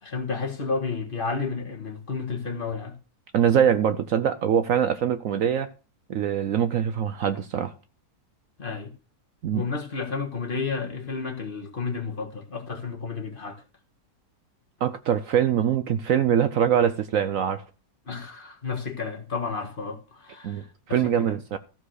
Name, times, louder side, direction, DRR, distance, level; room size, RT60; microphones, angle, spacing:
voice 1, 0.0-3.0 8.6-8.9 9.5-13.6 18.0-21.3, left 4 dB, 35° left, 1.7 m, -31 dB
voice 2, 3.3-5.7 6.1-7.7 9.4-9.6 14.8-17.6 20.4-21.6, right 8 dB, 65° right, 1.0 m, -23 dB
14.0 x 5.0 x 6.4 m
omnidirectional pair, 1.7 m